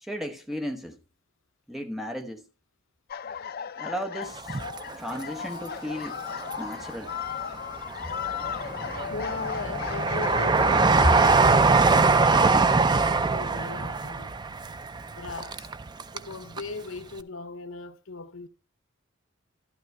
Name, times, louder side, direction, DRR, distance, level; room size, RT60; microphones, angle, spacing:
voice 1, 0.0-1.0 1.7-2.4 3.8-4.6 4.9-6.2 6.6-7.1, equal, ahead, 1.0 m, -35 dB
sound 1, 3.1-12.6, left 7 dB, 45° left, 0.4 m, -36 dB
Train, 4.4-5.6 6.1-7.0 7.5-16.3 16.6-16.7, right 4 dB, 20° right, 0.4 m, -23 dB
voice 2, 9.1-14.4 15.2-15.7 16.1-18.5, left 3 dB, 70° left, 0.8 m, -39 dB
12.0 x 11.5 x 2.2 m
head